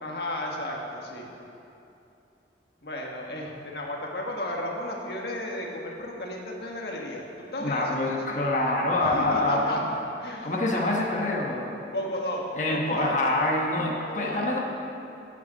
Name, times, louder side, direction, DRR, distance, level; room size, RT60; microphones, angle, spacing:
voice 1, 0.0-1.3 2.8-8.2 9.0-9.8 10.2-10.5 11.9-12.4 12.7-13.2 14.0-14.5, left 1 dB, 65° left, -1 dB, 1.6 m, -33 dB
voice 2, 7.6-9.8 10.4-11.7 12.6-14.6, left 2 dB, 45° left, -2 dB, 1.1 m, -26 dB
10.5 x 8.2 x 6.4 m, 2.8 s
head